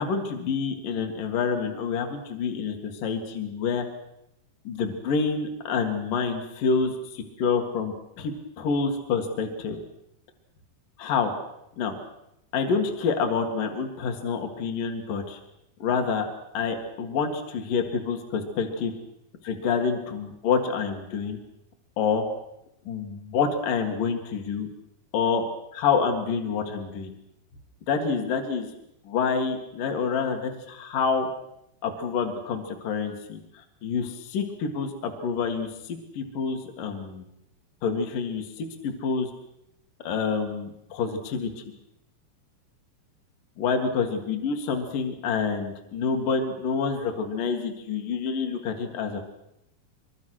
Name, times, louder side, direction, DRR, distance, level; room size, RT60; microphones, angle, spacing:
voice 1, 0.0-3.9 4.6-9.8 11.0-11.3 11.8-11.9 12.5-15.4 15.8-16.3 16.5-18.9 19.4-21.4 22.0-22.2 22.9-24.7 25.1-25.5 25.7-27.1 27.9-28.7 29.0-31.3 31.8-37.2 37.8-39.3 40.0-41.5 43.6-49.3, left 5 dB, 60° left, 4 dB, 3.1 m, -27 dB
24.5 x 23.0 x 6.3 m, 0.84 s
omnidirectional pair, 4.8 m